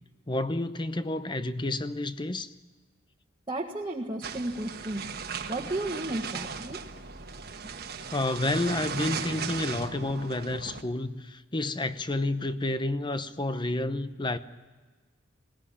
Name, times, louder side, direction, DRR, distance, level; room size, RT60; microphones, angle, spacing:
voice 1, 0.3-2.5 8.1-14.4, left 2 dB, 25° left, 0.8 m, -30 dB
voice 2, 3.5-5.1 5.5-6.8, right 1 dB, 25° right, 1.6 m, -33 dB
sound 1, 4.2-10.8, right 5 dB, 50° right, 1.4 m, -37 dB
20.5 x 18.0 x 9.9 m
head